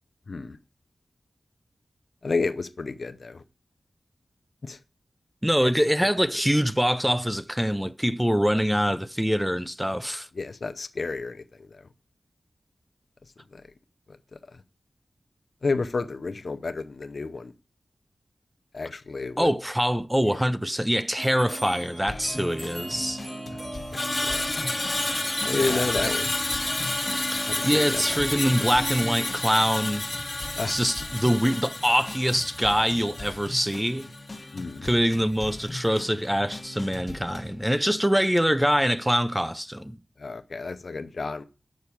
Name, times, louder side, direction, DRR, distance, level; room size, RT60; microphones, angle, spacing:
voice 1, 2.2-3.4 4.6-4.8 5.6-5.7 10.4-11.7 13.5-13.6 15.6-17.5 18.7-19.5 20.2-20.4 23.6-23.8 24.2-24.4 25.4-26.3 27.5-28.0 30.6-30.8 34.5-34.9 40.2-41.4, left 4 dB, 60° left, 0.7 m, -31 dB
voice 2, 5.4-10.3 19.4-23.2 25.5-26.1 27.3-30.1 30.7-34.1 34.8-40.0, equal, 5° right, 0.5 m, -24 dB
sound 1, 21.2-29.3, right 1 dB, 35° right, 3.0 m, -38 dB
sound 2, 22.1-37.6, left 2 dB, 45° left, 1.2 m, -41 dB
Screech, 23.9-34.3 34.6-34.9, left 2 dB, 25° left, 0.9 m, -30 dB
6.5 x 5.7 x 7.1 m
wide cardioid pair, 70°, 0 cm